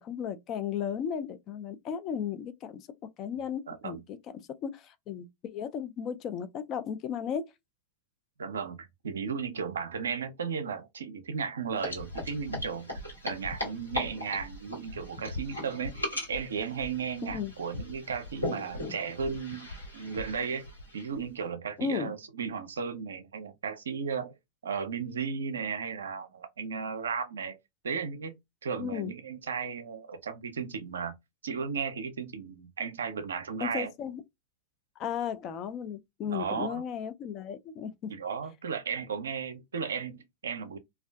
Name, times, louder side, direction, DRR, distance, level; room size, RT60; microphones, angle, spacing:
voice 1, 0.0-2.9 3.2-4.2 4.6-7.5 17.2-17.5 21.8-22.1 28.8-29.1 33.6-34.2 35.0-38.1, left 8 dB, 35° left, 0.3 m, -35 dB
voice 2, 3.3-4.0 8.4-12.9 13.2-16.0 16.3-20.7 20.9-24.3 24.6-27.6 27.8-28.3 28.6-31.1 31.4-33.9 36.3-36.8 38.1-40.8, right 6 dB, 70° right, 0.4 m, -35 dB
sound 1, 11.8-21.3, left 1 dB, 90° left, 1.2 m, -38 dB
2.4 x 2.3 x 2.2 m
figure-of-eight pair, 90°, 0 cm